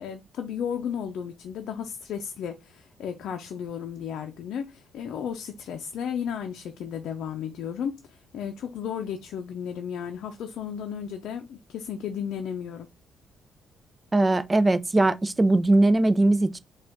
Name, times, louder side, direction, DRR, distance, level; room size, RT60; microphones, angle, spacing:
voice 1, 0.0-12.9, left 8 dB, 75° left, 0.5 m, -34 dB
voice 2, 14.1-16.6, right 2 dB, 20° right, 0.4 m, -20 dB
4.8 x 2.3 x 3.6 m
cardioid pair, 90°, 0 cm